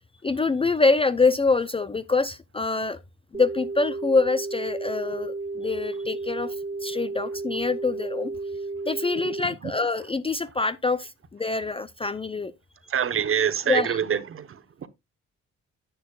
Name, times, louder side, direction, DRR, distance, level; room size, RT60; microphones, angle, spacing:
voice 1, 0.2-3.0 3.3-6.5 6.8-8.3 8.9-12.5 13.7-14.0, left 3 dB, 20° left, 0.5 m, -25 dB
sound 1, 3.3-9.4, right 3 dB, 20° right, 1.1 m, -33 dB
voice 2, 12.9-14.5 14.8-14.9, right 8 dB, 45° right, 1.1 m, -25 dB
10.0 x 9.3 x 2.3 m
cardioid pair, 90°, 30 cm